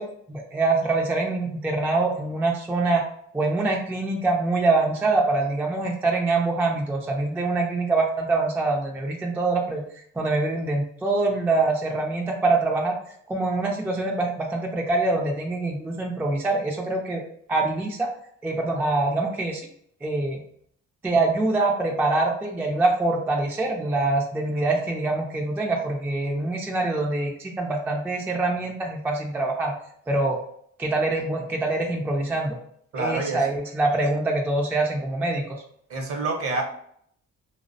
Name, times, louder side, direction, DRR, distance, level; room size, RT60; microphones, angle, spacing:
voice 1, 0.0-3.0 3.3-13.0 13.3-17.2 17.5-18.1 18.4-19.7 20.0-20.4 21.0-29.8 30.1-30.4 30.8-32.6 33.0-35.6, right 2 dB, 5° right, 0 dB, 0.3 m, -24 dB
voice 2, 32.9-33.5 35.9-36.6, right 3 dB, 50° right, 2 dB, 0.7 m, -27 dB
2.4 x 2.0 x 2.6 m, 0.66 s
cardioid pair, 90°, 30 cm